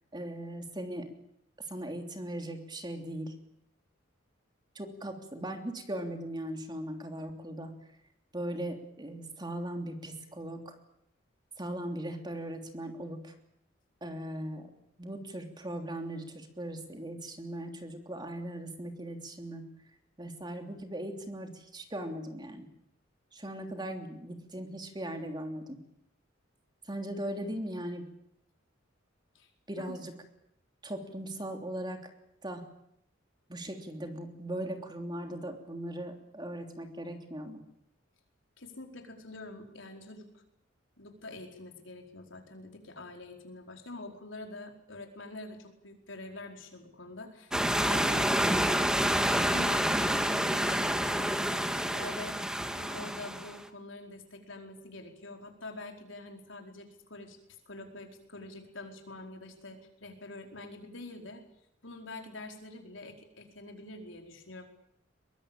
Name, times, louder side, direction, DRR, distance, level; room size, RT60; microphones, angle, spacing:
voice 1, 0.1-1.1 1.6-3.3 4.7-7.7 8.3-10.8 11.6-13.3 14.0-14.7 15.0-19.7 20.2-22.7 23.3-25.8 26.8-28.0 29.7-30.1 30.8-32.1 32.4-32.7 33.5-37.6, right 1 dB, 20° right, 5 dB, 3.2 m, -39 dB
voice 2, 38.6-40.4 41.0-48.3 49.2-61.4 61.8-64.6, left 2 dB, 70° left, 3 dB, 4.7 m, -46 dB
sound 1, 47.5-53.6, equal, 5° right, 1.7 m, -28 dB
22.5 x 21.5 x 8.9 m, 0.76 s
head